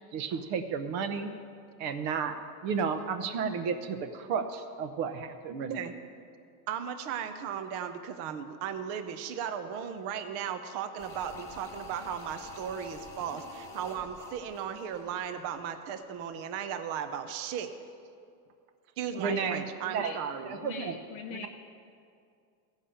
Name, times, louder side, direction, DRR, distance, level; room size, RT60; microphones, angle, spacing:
voice 1, 0.1-1.3 1.8-2.4 2.6-5.8 19.2-20.1 20.4-20.9 21.3-21.5, right 6 dB, 50° right, 7 dB, 0.9 m, -32 dB
voice 2, 6.7-17.7 19.0-20.6, right 8 dB, 30° right, 8 dB, 0.5 m, -36 dB
sound 1, 11.0-16.1 16.4-16.5, left 2 dB, 5° left, 1.2 m, -47 dB
voice 3, 19.1-19.5 19.8-20.2 20.5-21.5, left 6 dB, 40° left, 2 dB, 0.7 m, -42 dB
14.5 x 5.6 x 8.7 m, 2.3 s
cardioid pair, 170°, 48 cm